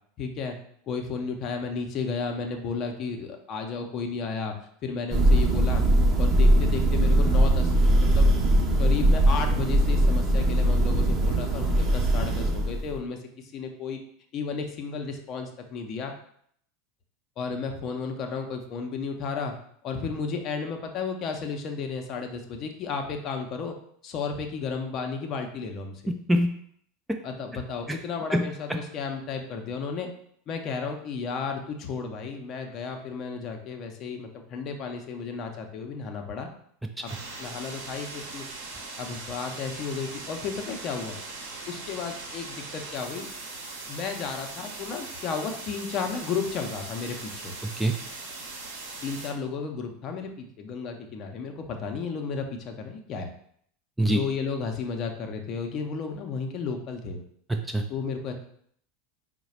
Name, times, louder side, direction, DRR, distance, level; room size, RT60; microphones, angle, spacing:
voice 1, 0.2-0.6 0.9-4.5 4.8-5.8 6.2-7.7 8.0-8.3 8.8-14.0 14.3-16.1 17.4-19.5 19.8-23.7 24.0-26.0 27.2-30.1 30.5-36.5 37.0-37.1 37.4-38.5 39.0-41.2 41.7-43.3 43.9-47.5 49.0-53.3 54.1-57.2 57.9-58.3, left 5 dB, 40° left, 4 dB, 0.6 m, -33 dB
Thunder, 5.1-13.0, right 1 dB, 30° right, 0.7 m, -21 dB
voice 2, 26.1-26.5 27.1-27.2 27.9-28.0 28.3-28.8 47.6-48.0 54.0-54.2 57.5-57.8, equal, 5° right, 4 dB, 0.4 m, -25 dB
sound 1, 37.1-49.3, right 3 dB, 65° right, 0.9 m, -40 dB
4.7 x 2.2 x 4.2 m, 0.65 s
figure-of-eight pair, 80°, 0 cm